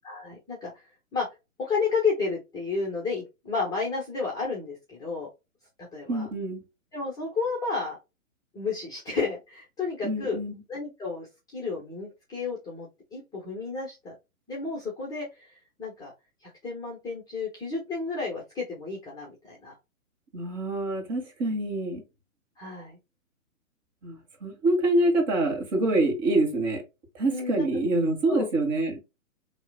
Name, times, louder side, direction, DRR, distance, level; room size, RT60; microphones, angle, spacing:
voice 1, 0.0-0.7 1.1-1.3 1.6-5.3 5.9-6.3 6.9-8.0 8.5-10.4 10.7-14.1 14.5-15.5 15.8-16.1 16.6-19.7 22.6-23.0 27.3-27.7 28.3-28.5, left 4 dB, 10° left, 1.0 m, -31 dB
voice 2, 6.1-6.6 10.0-10.6 20.3-22.0 24.0-26.8 27.1-29.0, right 2 dB, 30° right, 1.9 m, -26 dB
4.8 x 3.1 x 2.3 m
hypercardioid pair, 145°, 41 cm